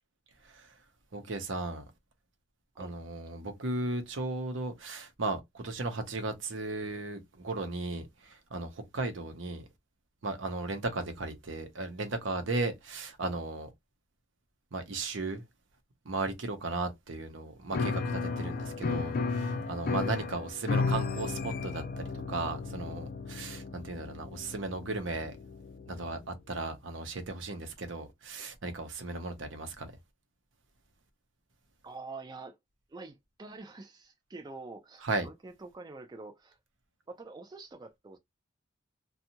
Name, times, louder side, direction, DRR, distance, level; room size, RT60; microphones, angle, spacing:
voice 1, 0.4-0.8 1.1-1.8 2.8-9.7 10.2-13.7 14.7-15.4 16.0-25.4 25.9-29.9 35.0-35.3, right 3 dB, 70° right, 0.7 m, -36 dB
Piano, 17.7-26.2, left 4 dB, 50° left, 0.4 m, -34 dB
voice 2, 31.8-32.6 32.9-36.6 37.1-38.2, right 3 dB, 20° right, 0.4 m, -46 dB
2.6 x 2.3 x 2.8 m
head